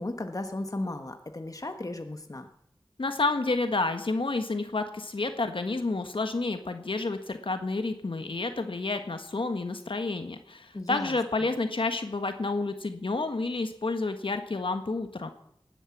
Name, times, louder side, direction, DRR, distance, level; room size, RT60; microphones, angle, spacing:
voice 1, 0.0-2.5 10.7-11.1, left 2 dB, 40° left, 6 dB, 1.3 m, -35 dB
voice 2, 3.0-15.3, left 3 dB, 65° left, 7 dB, 1.5 m, -30 dB
18.5 x 10.0 x 7.2 m, 0.74 s
wide cardioid pair, 65°, 9 cm